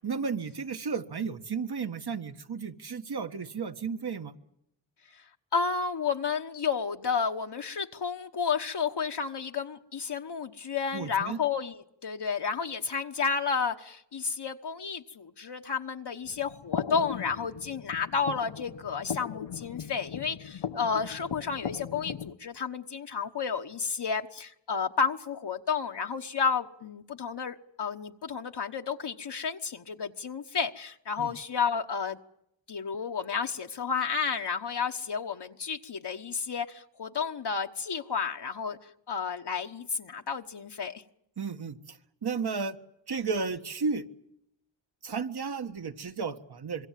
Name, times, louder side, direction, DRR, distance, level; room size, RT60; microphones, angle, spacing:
voice 1, 0.0-4.3 10.9-11.4 31.2-31.3 41.4-42.0 42.2-42.8 43.1-44.0 45.0-46.9, right 5 dB, 55° right, 8 dB, 1.7 m, -33 dB
voice 2, 5.5-32.2 32.7-41.0, left 6 dB, 60° left, 3 dB, 1.2 m, -31 dB
sound 1, 16.2-22.3, left 8 dB, 80° left, 1.2 m, -38 dB
26.0 x 22.5 x 7.5 m, 0.79 s
cardioid pair, 55°, 45 cm